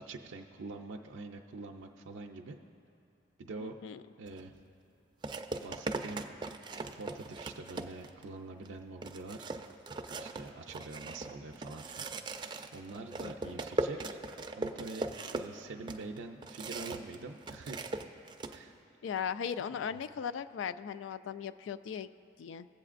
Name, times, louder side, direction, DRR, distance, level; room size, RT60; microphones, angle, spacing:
voice 1, 0.0-2.6 3.4-3.7 4.2-4.5 5.6-6.3 6.9-9.5 10.2-12.1 12.3-14.2 14.6-17.9 18.5-18.7 19.7-20.0, right 3 dB, 85° right, 2 dB, 0.5 m, -45 dB
voice 2, 3.6-4.0 13.2-13.6 19.0-22.1 22.4-22.7, left 7 dB, 80° left, 14 dB, 0.3 m, -38 dB
sound 1, 4.3-4.4 5.2-8.2 8.7-8.8 9.0-17.2 17.4-18.6, right 2 dB, 25° right, 0.4 m, -39 dB
18.5 x 7.7 x 2.5 m, 2.7 s
head